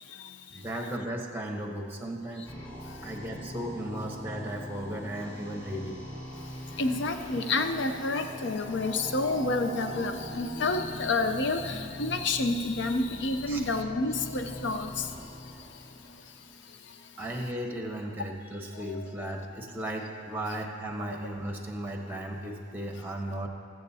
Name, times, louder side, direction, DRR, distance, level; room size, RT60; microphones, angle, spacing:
voice 1, 0.5-2.5 3.0-6.0 13.5-13.6 17.2-23.5, right 1 dB, 10° right, 2 dB, 0.9 m, -35 dB
sound 1, 2.5-16.5, equal, 10° left, 2.0 m, -42 dB
voice 2, 6.8-15.1, left 3 dB, 65° left, 7 dB, 0.6 m, -29 dB
21.0 x 7.8 x 2.8 m, 2.3 s
head